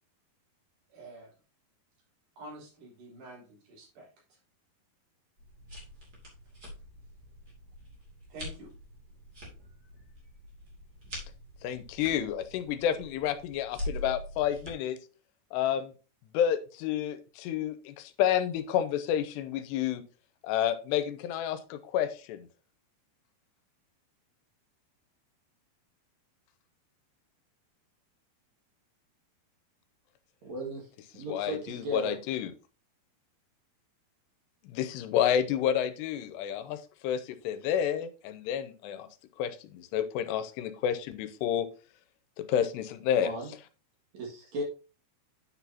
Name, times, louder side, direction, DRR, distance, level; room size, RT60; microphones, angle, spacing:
voice 1, 0.9-1.3 2.4-4.4 8.3-8.7, right 1 dB, 75° right, 5.7 m, -48 dB
sound 1, 5.4-14.7, left 1 dB, 30° right, 2.4 m, -44 dB
voice 2, 11.6-15.0 15.5-15.9 16.3-20.0 20.4-22.5 31.2-32.5 34.6-39.1 39.4-41.7 42.4-43.3, left 9 dB, 85° left, 2.8 m, -30 dB
voice 3, 30.4-30.9 31.2-32.2 43.2-43.5 44.1-44.6, right 1 dB, 50° right, 2.6 m, -36 dB
9.5 x 6.1 x 2.8 m
omnidirectional pair, 4.8 m